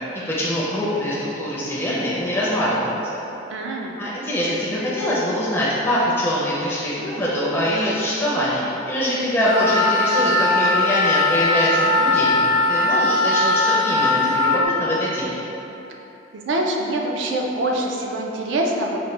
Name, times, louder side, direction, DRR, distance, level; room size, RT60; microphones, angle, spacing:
voice 1, 0.3-3.0 4.0-15.4, equal, 10° left, -8 dB, 0.4 m, -23 dB
voice 2, 3.5-3.9 16.5-19.0, right 1 dB, 80° right, 0 dB, 0.4 m, -24 dB
Wind instrument woodwind instrument, 9.4-14.6, left 2 dB, 90° left, 0.8 m, -19 dB
4.1 x 2.1 x 3.2 m, 3.0 s
head